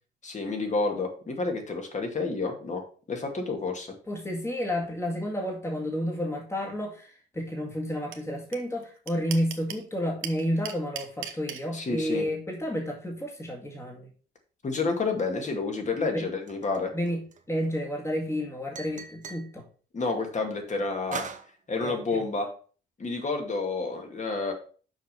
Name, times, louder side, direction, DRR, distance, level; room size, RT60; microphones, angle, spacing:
voice 1, 0.2-2.8 3.1-3.9 11.7-12.3 14.6-16.9 19.9-21.2 21.7-22.5 23.0-24.5, left 3 dB, 35° left, 3 dB, 2.2 m, -29 dB
voice 2, 4.1-14.1 16.1-16.3 16.9-17.2 17.5-19.6 21.8-22.3, equal, 15° left, 0 dB, 2.0 m, -31 dB
sound 1, 8.1-8.2 8.5-8.6 8.8-9.8 10.2-11.6, right 10 dB, 85° right, 1.1 m, -35 dB
sound 2, 16.5-17.7 18.8-19.5 21.1-21.5, right 5 dB, 40° right, 1.0 m, -38 dB
6.4 x 5.1 x 5.4 m, 0.40 s
cardioid pair, 90°, 20 cm